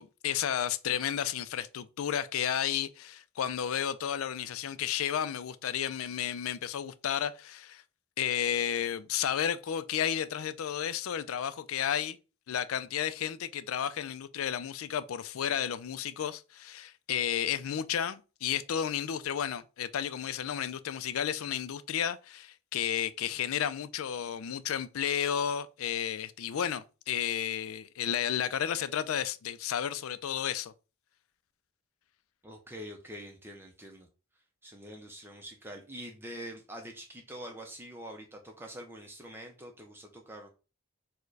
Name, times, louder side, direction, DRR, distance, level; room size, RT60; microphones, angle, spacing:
voice 1, 0.0-7.8 8.2-12.2 12.5-30.7, left 9 dB, 85° left, 0.4 m, -32 dB
voice 2, 32.4-34.1 34.6-40.5, equal, 10° right, 0.5 m, -45 dB
4.5 x 2.1 x 4.6 m
head